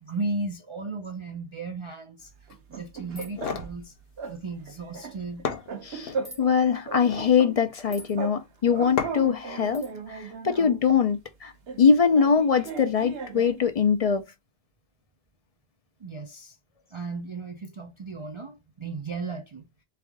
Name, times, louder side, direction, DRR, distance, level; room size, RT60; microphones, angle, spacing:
voice 1, 0.0-2.3 2.7-3.9 4.3-5.4 16.0-16.6 16.9-19.7, right 3 dB, 35° right, 0.5 m, -35 dB
sound 1, 2.5-3.8 4.2-4.4 4.7-6.6 6.9-8.4 8.7-10.8 11.7-13.7, right 5 dB, 75° right, 1.0 m, -37 dB
sound 2, 3.1-3.5 6.2-6.4 7.9-8.2 9.7-9.9, left 1 dB, 15° right, 1.7 m, -44 dB
sound 3, 3.2-3.7 5.0-5.1 5.4-6.2 6.9-7.4 9.0-9.4, left 6 dB, 65° left, 0.9 m, -32 dB
voice 2, 5.8-11.5 11.8-14.2, left 6 dB, 50° left, 0.5 m, -23 dB
3.5 x 3.4 x 3.4 m
omnidirectional pair, 1.0 m